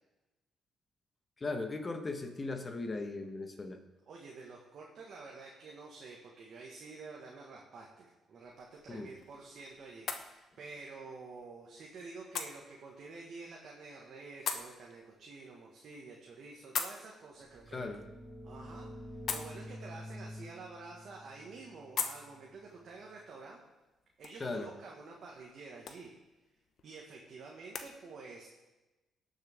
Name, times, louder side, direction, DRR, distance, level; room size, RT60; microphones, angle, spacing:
voice 1, 1.4-3.8 8.9-9.1 17.7-18.1 24.4-24.7, left 3 dB, 30° left, 5 dB, 1.3 m, -38 dB
voice 2, 4.1-17.9 18.4-19.0 19.3-23.6 24.2-26.1 26.8-28.5, right 3 dB, 60° right, -2 dB, 1.7 m, -49 dB
sound 1, 8.4-27.9, left 6 dB, 60° left, 1.0 m, -45 dB
sound 2, 17.5-23.0, equal, 15° left, 2.0 m, -49 dB
18.5 x 6.5 x 3.6 m, 1.1 s
cardioid pair, 90°, 0 cm